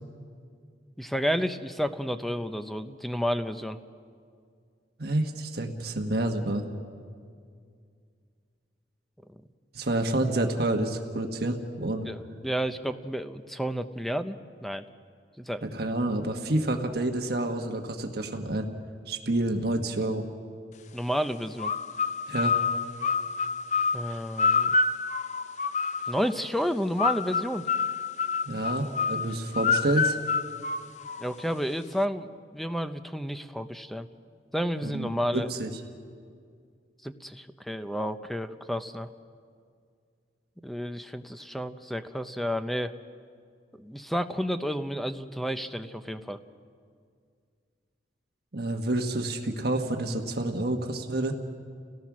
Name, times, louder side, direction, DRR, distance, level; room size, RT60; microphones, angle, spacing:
voice 1, 1.0-3.8 9.3-9.4 12.1-14.4 14.6-14.8 15.4-15.6 20.9-21.7 23.9-24.8 26.1-27.7 31.2-34.1 34.5-35.5 37.0-39.1 40.6-42.9 43.8-46.4, equal, ahead, 9 dB, 0.6 m, -31 dB
voice 2, 5.0-6.6 9.7-12.1 15.7-18.7 19.1-20.3 22.3-22.6 28.4-30.2 34.8-35.7 48.5-51.3, right 1 dB, 60° right, 4 dB, 1.4 m, -28 dB
sound 1, 21.6-26.3 27.0-31.4, left 5 dB, 40° left, 0.5 m, -28 dB
29.5 x 17.5 x 6.1 m, 2.2 s
head